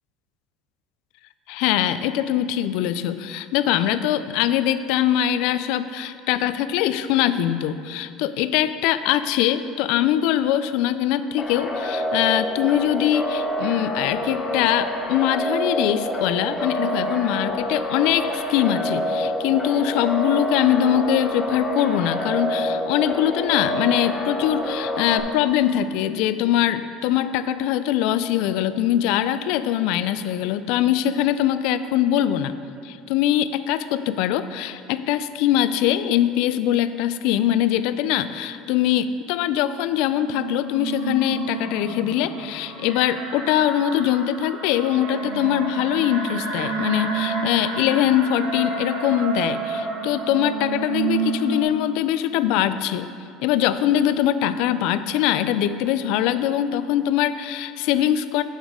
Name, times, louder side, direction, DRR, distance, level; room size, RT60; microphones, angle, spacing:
voice 1, 1.5-32.5 32.8-53.1 53.4-58.4, left 11 dB, 60° left, 12 dB, 0.3 m, -22 dB
sound 1, 11.4-25.2, left 1 dB, 10° left, 0.6 m, -27 dB
sound 2, 39.7-51.6, right 4 dB, 80° right, 1.2 m, -30 dB
8.1 x 7.1 x 3.7 m, 2.3 s
cardioid pair, 170°, 0 cm